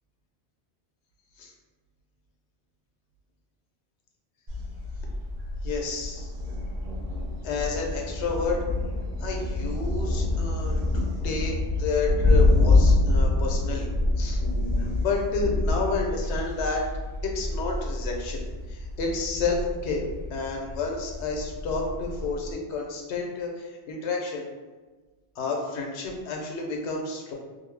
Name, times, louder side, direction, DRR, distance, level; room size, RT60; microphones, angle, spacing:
Thunder, 4.5-22.5, left 2 dB, 50° right, 0.5 m, -26 dB
voice 1, 5.6-6.3 7.4-8.6 9.2-11.5 11.8-13.9 14.2-14.4 14.8-16.8 17.2-18.4 18.7-24.5 25.4-27.3, left 4 dB, 85° left, 0 dB, 0.9 m, -30 dB
2.6 x 2.0 x 3.1 m, 1.3 s
omnidirectional pair, 1.1 m